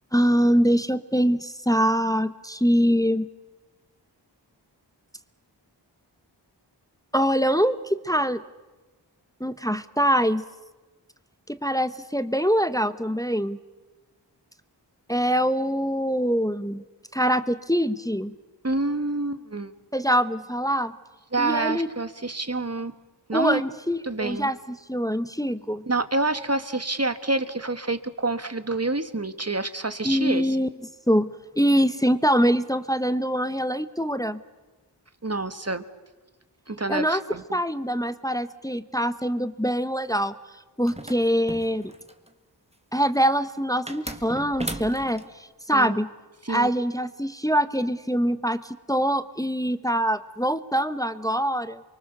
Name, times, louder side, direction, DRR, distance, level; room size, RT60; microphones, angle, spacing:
voice 1, 0.1-3.3 7.1-8.4 9.4-10.4 11.5-13.6 15.1-16.8 17.1-18.3 19.9-20.9 21.4-21.9 23.3-25.8 30.0-30.7 31.1-31.3 31.6-34.4 36.9-37.2 37.5-40.3 40.8-41.9 42.9-46.1 46.5-51.8, equal, 10° left, 12 dB, 1.0 m, -24 dB
voice 2, 18.6-19.7 21.3-22.9 23.3-23.6 24.0-24.5 25.9-30.6 35.2-35.8 36.7-37.6 45.7-46.0 46.4-46.7, right 2 dB, 35° right, 11 dB, 1.5 m, -27 dB
sound 1, 40.9-42.3 43.9-45.3, right 1 dB, 15° right, 1.7 m, -36 dB
28.5 x 23.5 x 6.8 m, 1.2 s
wide cardioid pair, 45°, 43 cm